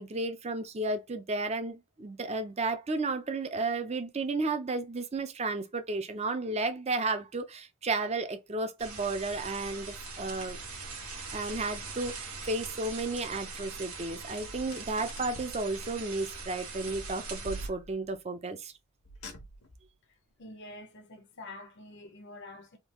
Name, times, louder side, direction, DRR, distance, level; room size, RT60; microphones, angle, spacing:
voice 1, 0.0-10.6 11.3-18.7, right 3 dB, 30° right, 0.5 m, -33 dB
sound 1, 8.8-17.7, right 4 dB, 80° right, 1.4 m, -42 dB
Car, 14.4-15.6 16.9-18.2 19.0-19.9, right 1 dB, 90° left, 1.1 m, -45 dB
voice 2, 20.0-22.8, left 2 dB, 50° left, 0.7 m, -47 dB
3.6 x 2.3 x 3.0 m
head